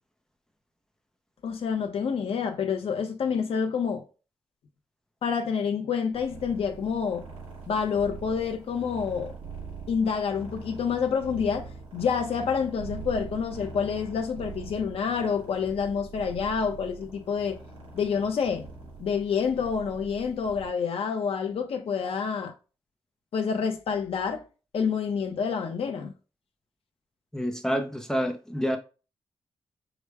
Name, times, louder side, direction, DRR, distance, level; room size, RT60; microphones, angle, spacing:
voice 1, 1.4-4.0 5.2-7.3 7.7-9.3 9.9-17.6 17.9-18.7 19.0-22.5 23.3-24.4 24.7-26.1, left 6 dB, 75° left, 0.7 m, -28 dB
sound 1, 6.1-20.7, right 4 dB, 85° right, 2.4 m, -43 dB
voice 2, 27.3-28.8, equal, 5° left, 0.5 m, -28 dB
4.9 x 2.1 x 4.6 m
wide cardioid pair, 140°, 10 cm